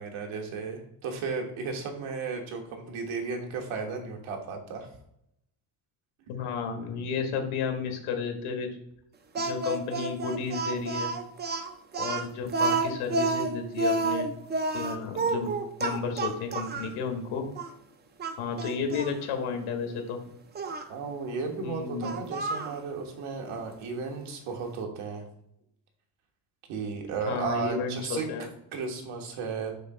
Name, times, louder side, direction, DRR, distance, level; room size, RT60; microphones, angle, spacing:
voice 1, 0.0-4.9 20.9-25.2 26.7-29.7, right 4 dB, 80° right, 2 dB, 1.5 m, -34 dB
voice 2, 6.3-8.7 9.4-11.1 12.0-14.3 14.7-15.5 15.8-17.4 18.4-20.2 21.6-22.2 27.3-28.5, left 5 dB, 80° left, 4 dB, 1.5 m, -32 dB
Speech, 9.4-16.9 17.6-17.7 18.2-19.1 20.6-20.9 22.0-22.8, right 3 dB, 25° right, 0.3 m, -30 dB
6.4 x 2.8 x 5.4 m, 0.77 s
cardioid pair, 150°, 49 cm